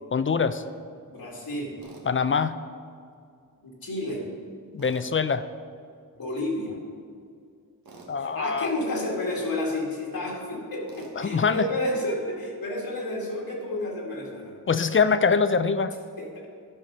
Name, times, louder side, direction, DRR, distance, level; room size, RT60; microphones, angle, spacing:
voice 1, 0.1-0.6 2.1-2.5 4.7-5.5 8.1-8.7 11.2-11.7 14.7-16.0, left 5 dB, 35° left, 12 dB, 0.4 m, -23 dB
voice 2, 1.1-1.7 3.6-4.2 6.2-6.8 8.2-14.5 16.2-16.5, left 1 dB, 80° left, -3 dB, 2.1 m, -31 dB
Tools, 1.8-2.1 4.8-5.1 7.8-8.1 10.9-11.2, right 3 dB, 90° right, 1.4 m, -47 dB
12.0 x 5.7 x 5.4 m, 2.2 s
wide cardioid pair, 80°, 35 cm